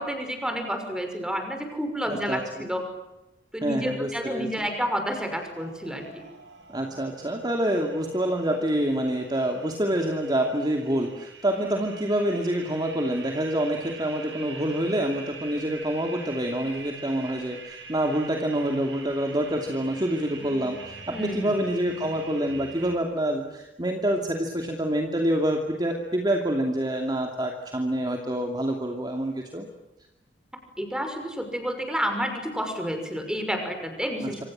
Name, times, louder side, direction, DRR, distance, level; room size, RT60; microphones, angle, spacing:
voice 1, 0.0-2.8 3.5-6.3 21.1-21.5 30.8-34.5, equal, 5° right, 5 dB, 6.1 m, -30 dB
voice 2, 2.1-2.6 3.6-4.7 6.7-29.7 34.2-34.4, right 1 dB, 25° right, 2 dB, 2.6 m, -27 dB
sound 1, 5.1-23.0, right 3 dB, 70° right, 6.8 m, -44 dB
27.5 x 26.0 x 7.6 m, 0.97 s
head